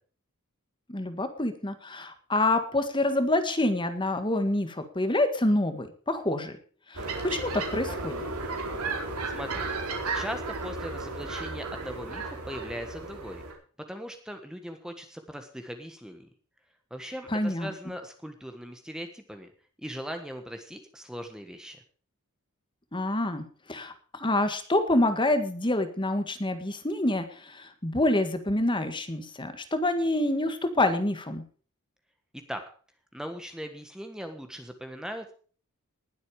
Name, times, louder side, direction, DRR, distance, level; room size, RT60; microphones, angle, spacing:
voice 1, 0.9-6.5 6.9-8.2 17.3-17.7 22.9-31.4, left 1 dB, 20° left, 9 dB, 1.7 m, -27 dB
sound 1, 6.9-13.5, right 3 dB, 80° right, 4.3 m, -34 dB
voice 2, 9.3-9.7 10.1-13.4 13.9-16.3 16.9-19.5 19.8-21.8 32.3-32.6 33.1-35.3, equal, 5° right, 6 dB, 1.4 m, -39 dB
20.0 x 8.1 x 4.9 m, 0.42 s
head